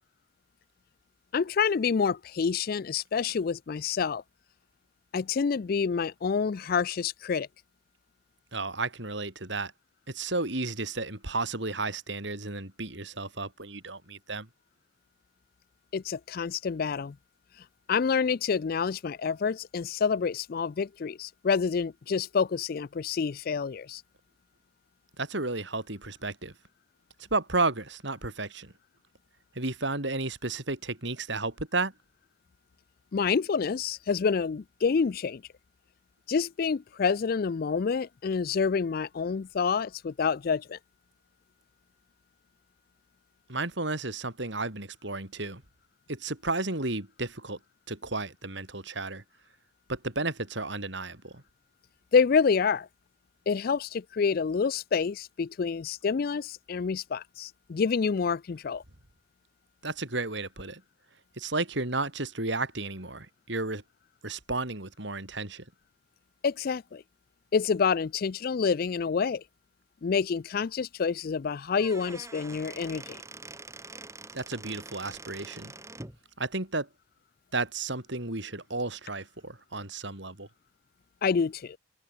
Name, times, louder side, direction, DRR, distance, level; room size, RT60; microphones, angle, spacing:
voice 1, 1.3-4.2 5.1-7.5 15.9-17.1 17.9-24.0 33.1-35.4 36.3-40.8 52.1-52.9 53.5-58.8 66.4-67.0 67.5-69.4 70.0-73.2 81.2-81.8, left 5 dB, 50° left, 0.4 m, -28 dB
voice 2, 8.5-9.7 10.1-14.5 25.2-26.5 27.3-28.7 29.5-31.9 43.5-45.6 46.1-47.6 47.9-49.2 49.9-51.4 59.8-60.8 61.3-63.8 64.2-65.6 74.3-75.7 76.4-76.9 77.5-80.5, right 3 dB, 60° right, 3.4 m, -33 dB
Squeak / Wood, 71.6-76.2, right 2 dB, 15° right, 3.3 m, -45 dB
open air
head